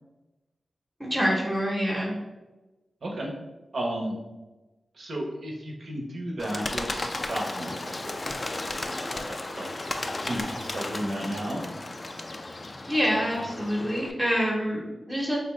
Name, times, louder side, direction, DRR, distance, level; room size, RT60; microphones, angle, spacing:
voice 1, 1.0-2.1 12.9-15.4, equal, 20° right, -3 dB, 0.8 m, -26 dB
voice 2, 3.0-3.3 3.7-4.2 4.9-8.1 9.1-9.7 10.2-11.6, right 1 dB, 65° right, -1 dB, 0.8 m, -33 dB
Bird, 6.4-14.1, left 2 dB, 35° left, 0.3 m, -34 dB
3.5 x 2.6 x 3.1 m, 1.1 s
wide cardioid pair, 95°, 0 cm